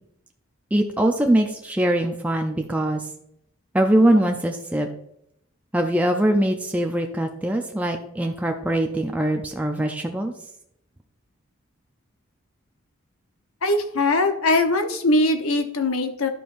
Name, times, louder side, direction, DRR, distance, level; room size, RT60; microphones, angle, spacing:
voice 1, 0.7-3.0 3.7-4.9 5.7-10.3, right 1 dB, 5° right, 3 dB, 0.4 m, -22 dB
voice 2, 13.6-16.3, left 2 dB, 80° left, 7 dB, 0.9 m, -21 dB
11.5 x 5.4 x 2.6 m, 0.76 s
head